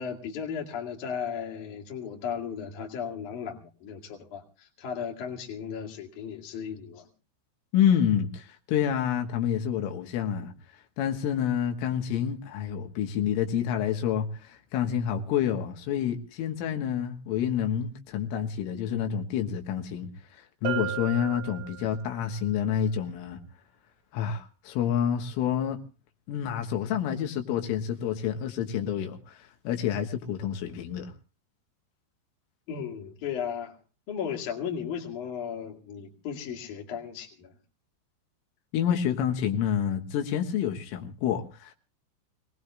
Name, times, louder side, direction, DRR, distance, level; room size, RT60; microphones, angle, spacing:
voice 1, 0.0-7.0 32.7-33.8 34.1-37.5, left 7 dB, 45° left, 3.1 m, -35 dB
voice 2, 7.7-10.5 11.0-23.4 24.1-25.8 26.3-31.1 38.7-41.7, left 9 dB, 85° left, 3.9 m, -28 dB
Bell, 20.7-22.2, right 10 dB, 85° right, 4.5 m, -35 dB
26.5 x 19.5 x 2.4 m
omnidirectional pair, 5.7 m